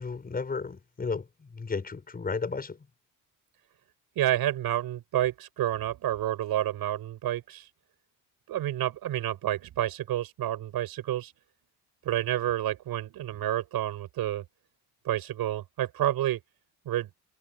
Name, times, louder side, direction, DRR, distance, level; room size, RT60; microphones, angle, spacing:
voice 1, 0.0-2.8, left 4 dB, 25° left, 5.8 m, -33 dB
voice 2, 4.2-7.7 8.5-11.3 12.0-14.4 15.0-16.4 16.9-17.1, right 13 dB, 75° right, 5.7 m, -29 dB
cardioid pair, 150°, 36 cm